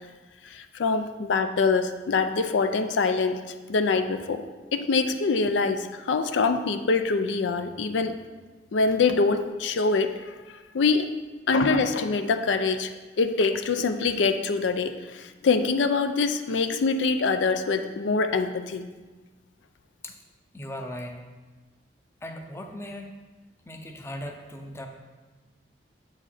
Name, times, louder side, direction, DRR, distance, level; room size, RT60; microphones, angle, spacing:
voice 1, 0.5-3.4 3.7-4.4 4.7-8.1 8.7-10.1 10.7-11.1 11.5-12.9 13.2-18.9, left 4 dB, 85° left, 8 dB, 0.4 m, -24 dB
voice 2, 20.5-21.2 22.2-23.1 23.7-24.9, left 1 dB, 15° left, 3 dB, 0.6 m, -38 dB
7.8 x 4.8 x 4.2 m, 1.3 s
head